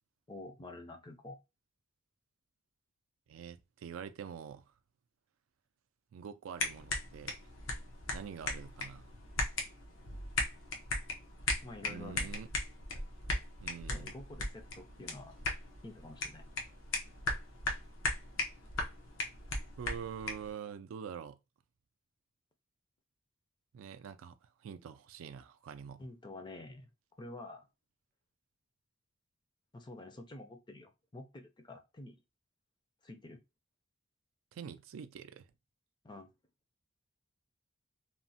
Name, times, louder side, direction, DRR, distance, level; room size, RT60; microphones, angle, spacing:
voice 1, 0.3-1.4 11.6-12.3 13.9-15.4 15.8-16.4 26.0-26.9 27.2-27.7 29.7-32.2 33.0-33.4 36.0-36.3, left 2 dB, 25° left, 0.4 m, -48 dB
voice 2, 3.3-4.7 6.1-7.4 8.1-9.1 11.8-12.5 13.6-14.1 19.8-21.4 23.7-26.0 34.5-35.5, right 7 dB, 85° right, 0.3 m, -45 dB
sound 1, 6.6-20.5, left 2 dB, 85° left, 0.7 m, -38 dB
3.0 x 2.1 x 2.7 m
head